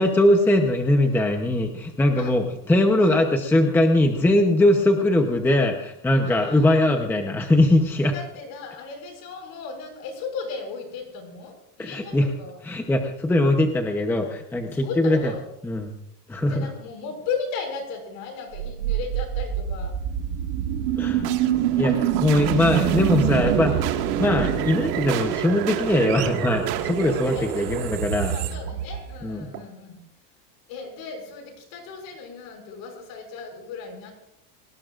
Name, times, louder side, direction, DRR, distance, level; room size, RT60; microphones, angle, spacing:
voice 1, 0.0-8.1 11.8-12.3 12.6-15.2 15.6-16.0 16.3-16.7 21.0-21.3 21.8-28.3 29.2-29.5, left 1 dB, 5° left, 3 dB, 0.8 m, -21 dB
voice 2, 6.2-6.9 8.1-12.6 14.7-15.5 16.5-19.9 24.1-24.3 27.3-27.8 28.3-30.0 30.7-34.1, left 5 dB, 50° left, 3 dB, 6.3 m, -36 dB
sound 1, 18.5-29.6, right 10 dB, 85° right, 2.0 m, -25 dB
28.5 x 19.0 x 2.5 m, 0.73 s
supercardioid pair, 165°, 46 cm